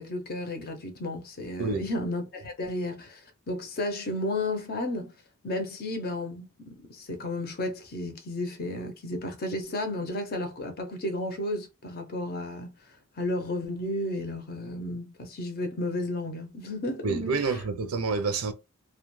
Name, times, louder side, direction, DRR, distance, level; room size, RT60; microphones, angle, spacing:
voice 1, 0.0-3.2 3.5-5.1 5.4-12.7 13.2-17.5, left 1 dB, 45° left, 0.6 m, -33 dB
voice 2, 17.0-18.5, right 4 dB, 90° right, 0.5 m, -28 dB
2.3 x 2.2 x 3.0 m
head